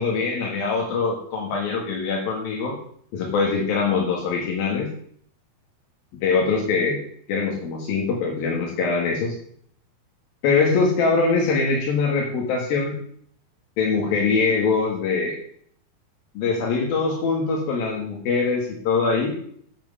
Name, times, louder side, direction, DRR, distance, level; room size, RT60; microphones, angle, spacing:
voice 1, 0.0-2.8 3.1-4.9 6.2-7.0 7.3-9.4 10.4-13.0 13.8-15.4 16.4-19.4, left 4 dB, 80° left, -1 dB, 3.6 m, -23 dB
10.5 x 7.8 x 6.9 m, 0.63 s
omnidirectional pair, 4.1 m